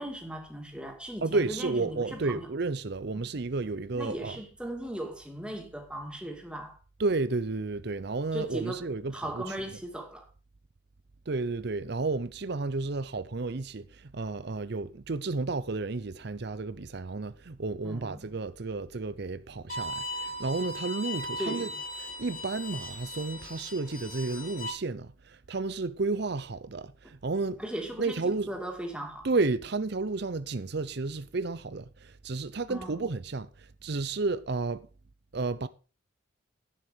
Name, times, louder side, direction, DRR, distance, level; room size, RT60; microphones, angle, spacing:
voice 1, 0.0-2.5 3.9-6.8 8.3-8.9 9.1-10.3 17.8-18.3 21.4-21.7 27.6-28.2 28.5-29.3 32.7-32.9, right 1 dB, 5° right, 2.6 m, -37 dB
voice 2, 1.2-4.4 7.0-9.6 11.3-21.7 22.0-27.6 28.0-28.6 29.2-34.9 35.3-35.7, right 3 dB, 55° right, 0.7 m, -32 dB
Bowed string instrument, 19.7-24.7, left 1 dB, 45° left, 2.5 m, -38 dB
11.0 x 9.5 x 5.2 m
head